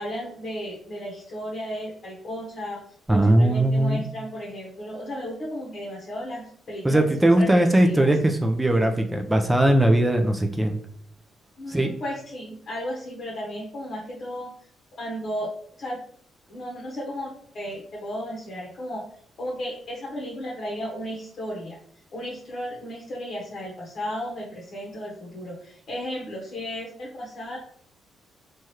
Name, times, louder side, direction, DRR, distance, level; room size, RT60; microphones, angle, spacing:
voice 1, 0.0-2.8 3.1-8.1 11.6-14.5 15.0-15.5 15.8-16.0 16.5-19.1 19.4-21.8 22.1-27.6, equal, 50° left, -4 dB, 0.8 m, -34 dB
voice 2, 3.1-4.0 6.8-10.8 11.7-11.9, right 1 dB, 10° right, 4 dB, 0.3 m, -19 dB
3.1 x 2.3 x 2.8 m, 0.64 s
cardioid pair, 90°, 0 cm